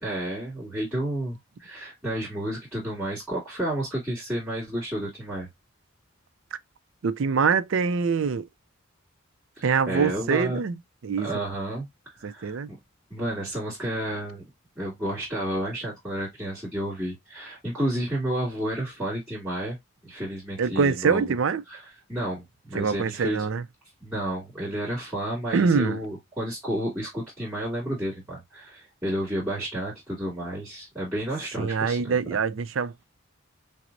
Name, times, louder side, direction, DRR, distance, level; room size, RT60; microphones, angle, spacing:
voice 1, 0.0-5.5 9.6-10.6 11.2-11.9 12.2-12.8 13.1-14.4 14.8-19.8 20.0-21.3 21.7-23.5 24.0-32.4, right 1 dB, 10° right, 2.5 m, -31 dB
voice 2, 7.0-8.5 9.6-10.7 11.0-11.3 12.2-12.7 20.6-21.6 22.7-23.6 25.5-26.0 31.6-33.0, right 5 dB, 65° right, 0.4 m, -24 dB
5.9 x 2.0 x 2.6 m
head